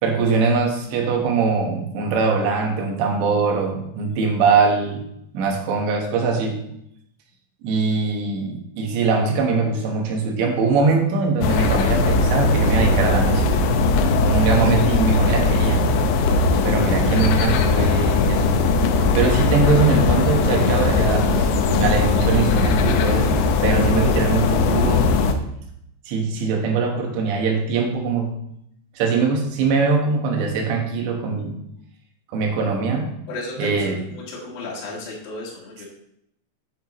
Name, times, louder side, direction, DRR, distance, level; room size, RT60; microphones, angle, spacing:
voice 1, 0.0-5.0 5.3-6.6 7.6-13.5 14.2-15.9 16.6-18.6 19.2-25.1 26.1-28.3 29.0-31.6 32.3-33.1 33.6-34.0, right 4 dB, 80° right, 2 dB, 3.6 m, -22 dB
sound 1, 11.4-25.3, left 3 dB, 80° left, 2.9 m, -19 dB
voice 2, 33.3-35.9, left 2 dB, 60° left, -5 dB, 3.7 m, -34 dB
8.9 x 8.1 x 3.1 m, 0.74 s
omnidirectional pair, 5.1 m